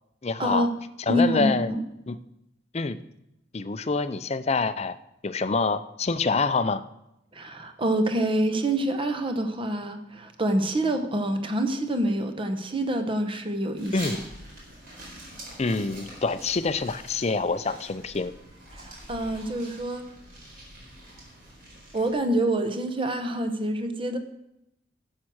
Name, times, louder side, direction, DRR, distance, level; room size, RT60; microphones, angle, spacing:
voice 1, 0.2-0.7 1.1-1.7 2.1-2.2 2.7-3.0 3.5-5.0 5.2-6.8 13.9-14.2 15.6-18.3, left 4 dB, 35° left, 13 dB, 0.5 m, -26 dB
voice 2, 1.1-1.8 7.3-14.0 18.7-20.0 21.9-24.2, right 1 dB, 25° right, 7 dB, 1.0 m, -26 dB
sound 1, 13.8-22.1, right 1 dB, 50° right, 4.2 m, -44 dB
11.5 x 7.5 x 6.3 m, 0.86 s
head